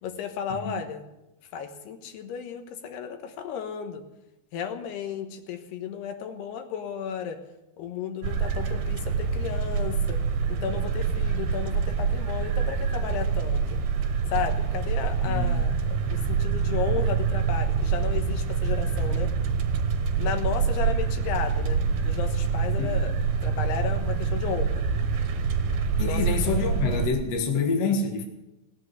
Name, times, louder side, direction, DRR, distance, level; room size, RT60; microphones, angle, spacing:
voice 1, 0.0-1.0 1.5-4.0 4.5-7.4 7.8-10.2 10.6-13.6 14.3-19.3 20.2-23.1 23.4-24.8 26.0-26.2, left 8 dB, 85° left, 6 dB, 3.4 m, -33 dB
sound 1, 8.2-27.1, right 5 dB, 75° right, 3.0 m, -26 dB
voice 2, 26.0-28.2, left 4 dB, 50° left, 2 dB, 2.3 m, -27 dB
18.0 x 8.1 x 8.0 m, 0.95 s
omnidirectional pair, 4.5 m